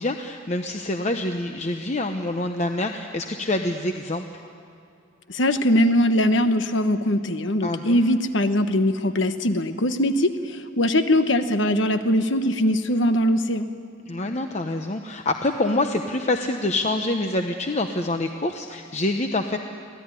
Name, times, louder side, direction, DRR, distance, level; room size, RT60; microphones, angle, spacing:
voice 1, 0.0-4.3 7.6-8.0 14.1-19.6, left 2 dB, 35° left, 5 dB, 0.9 m, -26 dB
voice 2, 5.3-13.7, left 1 dB, 65° left, 9 dB, 1.2 m, -21 dB
24.5 x 16.5 x 9.9 m, 2.5 s
head